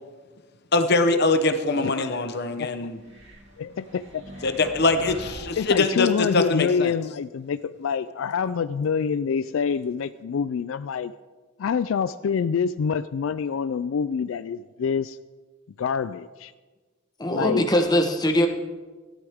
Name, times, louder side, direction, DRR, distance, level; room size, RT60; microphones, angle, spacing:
voice 1, 0.7-3.0 4.4-6.9, left 3 dB, 55° left, 8 dB, 0.9 m, -23 dB
voice 2, 1.8-2.2 2.6-2.7 3.6-4.2 4.7-4.8 5.6-11.1 11.6-15.2 15.8-16.5 17.3-17.6, left 6 dB, 75° left, 13 dB, 0.4 m, -26 dB
sound 1, 2.9-6.3, equal, 60° right, 2.6 m, -43 dB
voice 3, 17.2-18.5, equal, 20° left, 4 dB, 1.1 m, -21 dB
16.5 x 12.0 x 3.6 m, 1.3 s
head